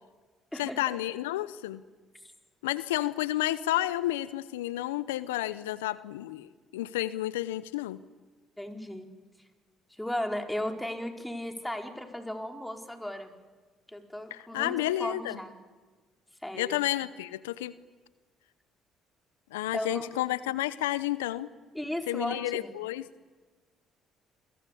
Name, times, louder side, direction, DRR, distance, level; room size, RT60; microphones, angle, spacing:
voice 1, 0.6-1.8 2.6-8.0 14.3-15.4 16.6-17.7 19.5-21.5 22.1-23.0, left 15 dB, 85° left, 17 dB, 0.7 m, -31 dB
voice 2, 8.6-9.1 10.0-13.3 13.9-15.6 16.4-16.8 19.7-20.1 21.7-22.8, left 1 dB, 5° left, 5 dB, 4.6 m, -35 dB
28.0 x 22.5 x 8.4 m, 1.4 s
hypercardioid pair, 50°, 0 cm